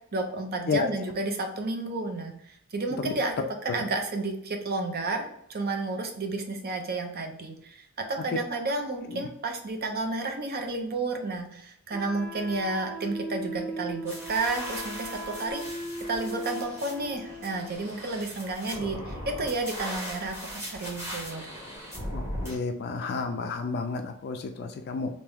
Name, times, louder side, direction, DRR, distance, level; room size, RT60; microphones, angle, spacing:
voice 1, 0.1-15.8 16.1-21.4, right 2 dB, 45° right, 4 dB, 0.6 m, -31 dB
Wind instrument woodwind instrument, 11.9-17.8, right 1 dB, 5° left, 0.6 m, -38 dB
sound 1, 14.1-22.6, equal, 10° right, 1.2 m, -39 dB
voice 2, 22.1-25.1, left 4 dB, 50° left, 5 dB, 0.3 m, -31 dB
3.4 x 2.6 x 3.4 m, 0.74 s
head